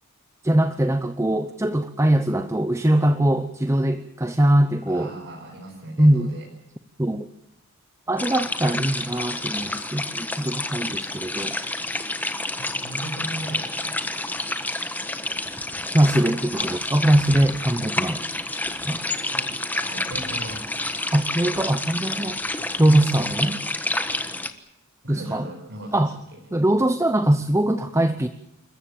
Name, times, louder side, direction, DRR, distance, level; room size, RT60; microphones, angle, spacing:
voice 1, 0.4-5.1 6.0-6.3 7.0-7.3 8.1-11.5 15.9-18.2 18.8-19.0 21.1-22.4 22.8-23.6 25.1-25.5 25.9-26.1 26.5-28.3, right 1 dB, 15° right, 10 dB, 0.8 m, -21 dB
voice 2, 4.9-6.5 12.6-14.0 19.3-19.5 19.8-20.6 25.0-26.4, right 1 dB, 55° right, -1 dB, 4.9 m, -37 dB
sound 1, 8.2-24.5, left 2 dB, 10° left, 1.3 m, -29 dB
28.0 x 14.5 x 8.7 m, 0.84 s
head